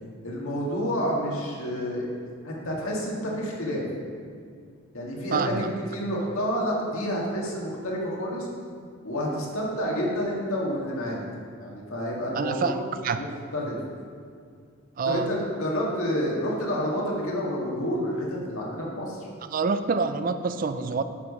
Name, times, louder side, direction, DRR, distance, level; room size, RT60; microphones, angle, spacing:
voice 1, 0.2-2.1 2.4-3.9 4.9-8.5 9.0-11.2 11.6-12.8 13.1-13.3 13.5-13.8 15.1-19.3, equal, 80° left, -3 dB, 2.0 m, -29 dB
voice 2, 5.3-5.7 12.4-12.8 13.0-13.2 15.0-15.3 19.5-21.0, right 4 dB, 40° right, 10 dB, 0.3 m, -26 dB
9.4 x 5.0 x 5.5 m, 2.2 s
head